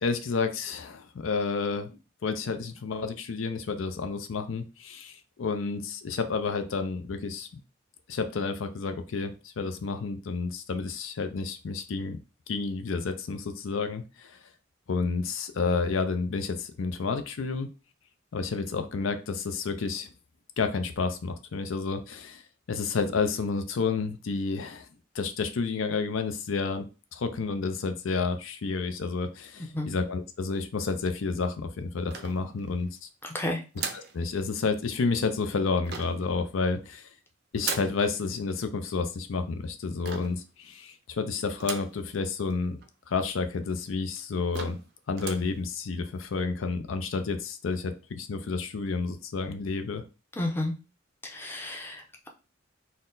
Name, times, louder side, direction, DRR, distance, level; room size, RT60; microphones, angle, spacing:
voice 1, 0.0-7.6 8.1-12.2 12.5-14.4 14.9-17.7 18.3-20.1 20.6-22.4 22.7-24.9 25.1-33.1 33.9-37.1 37.5-42.8 43.1-44.8 45.1-50.0, left 4 dB, 75° left, 8 dB, 0.5 m, -30 dB
voice 2, 29.6-29.9 33.2-33.6 50.4-50.7 51.2-52.3, left 1 dB, 10° left, 2 dB, 0.6 m, -32 dB
sound 1, 32.1-32.8 33.7-34.2 35.8-36.3 37.6-38.0 40.0-40.4 41.6-42.0 42.5-42.6 42.8-42.9 43.7-43.8 44.2-44.3 44.5-44.9 45.1-45.5, right 6 dB, 50° right, 0.5 m, -36 dB
4.2 x 2.1 x 3.8 m, 0.31 s
head